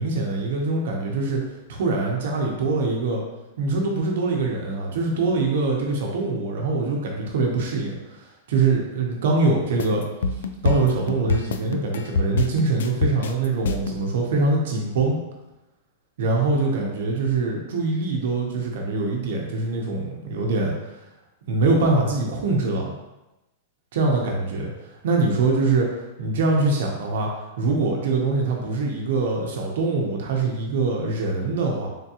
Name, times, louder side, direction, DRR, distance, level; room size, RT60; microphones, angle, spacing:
voice 1, 0.0-1.4 1.7-3.2 3.6-10.0 10.6-15.2 16.2-21.0 21.5-22.9 23.9-25.9 26.2-27.3 27.6-31.9, right 3 dB, 65° right, 0 dB, 0.8 m, -23 dB
sound 1, 9.8-14.0, left 4 dB, 90° left, 0.3 m, -25 dB
3.7 x 3.5 x 2.9 m, 1.0 s
supercardioid pair, 170°, 0 cm